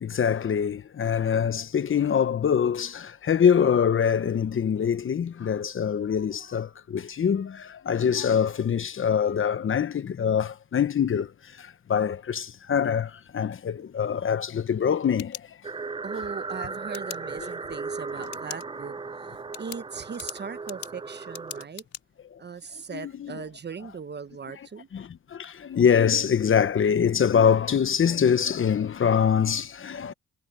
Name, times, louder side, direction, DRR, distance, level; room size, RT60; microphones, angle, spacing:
voice 1, 0.0-11.3 11.6-15.4 22.9-23.4 24.9-30.1, left 7 dB, 45° left, 1.1 m, -24 dB
sound 1, 15.0-16.0 16.9-17.2 18.2-18.6 19.0-19.1 19.5-22.0, left 10 dB, 65° left, 5.8 m, -41 dB
sound 2, 15.6-21.7, right 4 dB, 15° right, 0.6 m, -36 dB
voice 2, 16.0-21.9 22.4-24.9, right 6 dB, 35° right, 1.1 m, -39 dB
cardioid pair, 90°, 30 cm